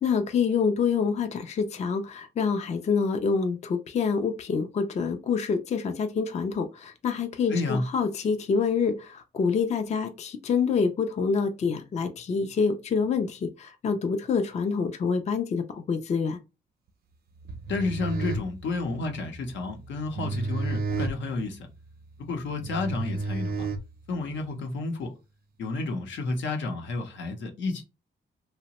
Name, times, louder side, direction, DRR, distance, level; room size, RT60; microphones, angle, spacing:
voice 1, 0.0-16.4, left 5 dB, 40° left, 0.4 m, -27 dB
voice 2, 7.5-7.8 17.7-21.7 22.2-23.7 24.1-25.1 25.6-27.8, left 3 dB, 85° left, 0.7 m, -31 dB
sound 1, 17.4-24.4, right 3 dB, 55° right, 0.5 m, -33 dB
2.8 x 2.1 x 2.8 m
cardioid pair, 120°, 19 cm